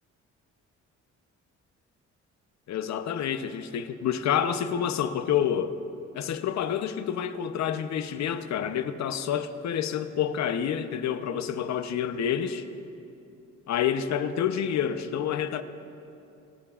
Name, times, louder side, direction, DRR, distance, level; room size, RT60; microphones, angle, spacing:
voice 1, 2.7-5.7 6.1-12.7 13.7-15.6, left 9 dB, 65° left, 0.8 m, -28 dB
27.5 x 14.0 x 2.5 m
cardioid pair, 90°, 30 cm